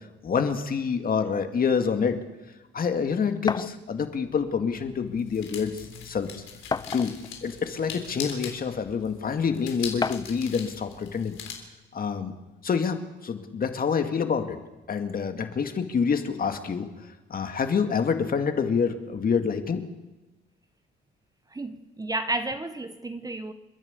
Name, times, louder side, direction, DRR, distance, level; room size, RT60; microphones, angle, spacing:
voice 1, 0.2-2.2 2.7-6.4 6.9-7.1 7.4-11.4 11.9-12.3 12.6-13.0 13.2-14.6 14.9-16.9 17.3-19.8, left 6 dB, 45° left, 2.2 m, -27 dB
sound 1, 3.5-3.8 4.9-5.0 5.4-5.5 6.7-7.3 8.2-8.3 10.0-10.4, left 4 dB, 20° left, 0.6 m, -30 dB
sound 2, 4.1-11.5, left 7 dB, 85° left, 3.7 m, -42 dB
voice 2, 21.5-23.5, right 2 dB, 20° right, 1.1 m, -32 dB
29.0 x 11.0 x 8.3 m
cardioid pair, 90°, 20 cm